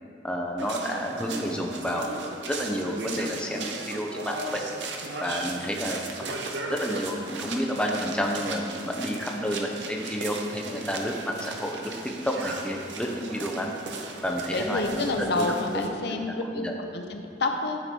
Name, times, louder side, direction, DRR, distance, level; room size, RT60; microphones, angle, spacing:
voice 1, 0.2-2.1 2.5-4.6 5.2-6.0 6.7-13.7 14.2-15.1 15.4-16.2 16.5-16.7, equal, 5° left, 0 dB, 0.6 m, -30 dB
sound 1, 0.6-15.9, right 3 dB, 70° right, 0.7 m, -37 dB
voice 2, 14.5-17.8, left 2 dB, 60° left, 4 dB, 0.6 m, -29 dB
9.8 x 4.7 x 4.3 m, 2.5 s
head